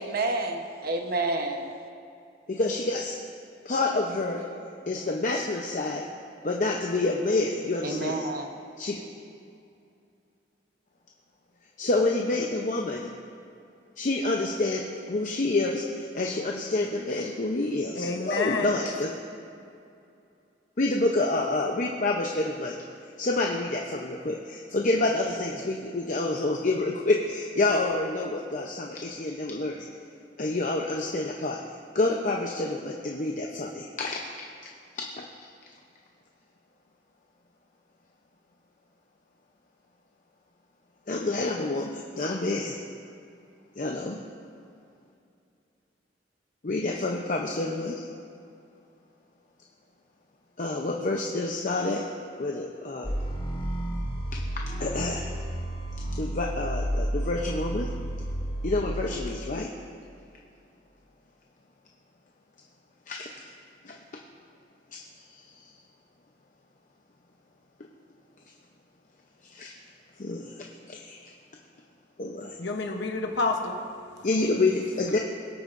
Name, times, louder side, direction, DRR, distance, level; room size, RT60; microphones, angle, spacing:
voice 1, 0.0-1.7 7.8-8.5, right 2 dB, 55° right, 4 dB, 1.0 m, -29 dB
voice 2, 2.5-3.2 3.6-4.4 4.9-6.0 6.4-8.3 8.8-9.0 11.8-13.1 14.0-14.8 15.1-19.1 20.8-22.8 23.2-29.8 30.4-31.6 31.9-34.4 35.0-35.5 41.1-42.8 43.8-44.2 46.6-48.0 50.6-52.0 52.4-53.2 54.3-54.4 54.8-55.3 56.2-57.9 58.6-59.7 63.1-63.3 63.8-64.0 64.9-65.0 65.5-65.6 69.5-69.7 70.2-71.3 72.2-72.6 74.2-75.2, left 2 dB, 45° left, 1 dB, 0.7 m, -28 dB
voice 3, 17.9-18.8 72.6-74.3, left 3 dB, 80° left, 3 dB, 0.9 m, -29 dB
sound 1, 53.0-59.2, right 1 dB, 25° left, 2.8 m, -31 dB
22.5 x 8.3 x 2.6 m, 2.5 s
head